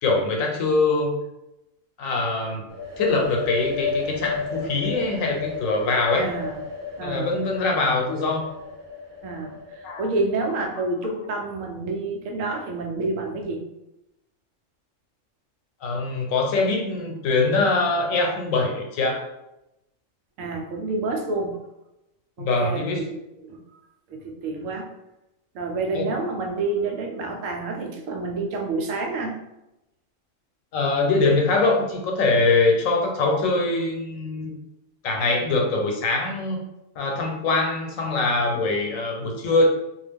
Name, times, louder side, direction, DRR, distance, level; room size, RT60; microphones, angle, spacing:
voice 1, 0.0-1.2 2.0-6.3 7.0-8.5 9.8-10.1 15.8-19.3 22.4-23.0 25.9-26.1 30.7-34.6 35.0-36.6 37.0-39.7, left 3 dB, 85° left, 1 dB, 1.1 m, -23 dB
sound 1, 2.7-10.3, left 5 dB, 40° right, 0.6 m, -33 dB
voice 2, 6.2-6.6 7.0-7.3 9.2-13.6 20.4-21.6 22.4-23.1 23.4-23.6 24.1-24.9 25.5-29.4, right 3 dB, 80° right, 2 dB, 1.0 m, -28 dB
2.4 x 2.2 x 3.4 m, 0.91 s
omnidirectional pair, 1.3 m